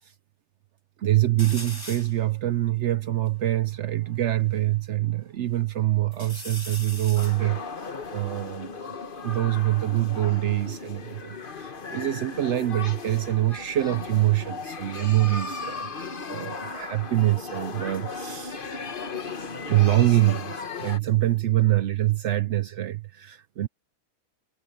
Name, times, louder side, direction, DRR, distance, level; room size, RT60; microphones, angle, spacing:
voice 1, 1.0-7.6 8.1-8.7 9.2-18.6 19.7-20.5 20.8-23.7, right 14 dB, 70° right, 0.7 m, -25 dB
sound 1, 1.4-2.2 2.8-2.9 3.1-4.6 5.1-5.7 6.1-9.5 10.4-12.3 12.6-13.1 14.7-17.3 17.6-18.4, left 1 dB, 15° left, 3.4 m, -45 dB
sound 2, 7.2-21.0, left 4 dB, 35° left, 1.3 m, -36 dB
omnidirectional pair, 1.7 m